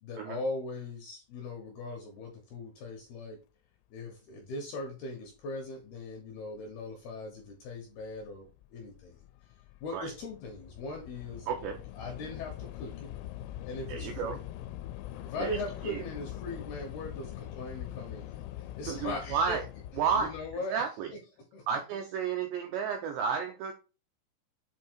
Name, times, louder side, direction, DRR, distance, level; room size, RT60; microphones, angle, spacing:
voice 1, 0.0-3.4 3.9-9.2 9.8-11.5 12.0-13.1 13.7-14.4 15.2-18.3 18.8-19.6 20.1-20.8 21.5-21.7, left 2 dB, 75° left, 2 dB, 2.4 m, -39 dB
Train / Subway metro underground, 6.6-6.7 7.5-7.7 8.0-20.6, left 13 dB, 90° left, 3.3 m, -43 dB
voice 2, 11.5-11.8 13.9-14.4 15.4-15.6 15.8-16.0 18.9-19.6 20.0-20.3 20.7-21.1 21.7-23.7, right 6 dB, 85° right, 3 dB, 2.5 m, -32 dB
8.2 x 2.8 x 4.5 m, 0.32 s
omnidirectional pair, 5.9 m